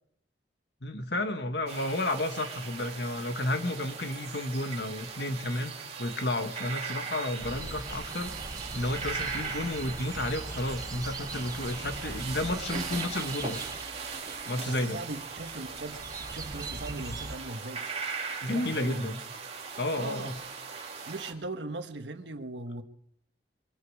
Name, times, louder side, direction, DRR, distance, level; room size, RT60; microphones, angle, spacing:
voice 1, 0.8-5.7 6.0-8.3 8.7-13.6 14.5-15.0 18.4-19.2 19.8-20.4, left 1 dB, 70° left, 1.7 m, -32 dB
sound 1, 1.7-21.3, right 5 dB, 40° right, 2.9 m, -39 dB
sound 2, 7.4-17.4, right 2 dB, 20° right, 0.5 m, -41 dB
voice 2, 14.6-16.0 16.3-17.8 18.4-19.1 19.9-20.3 21.0-22.8, right 2 dB, 90° right, 1.5 m, -39 dB
23.5 x 12.0 x 4.9 m
head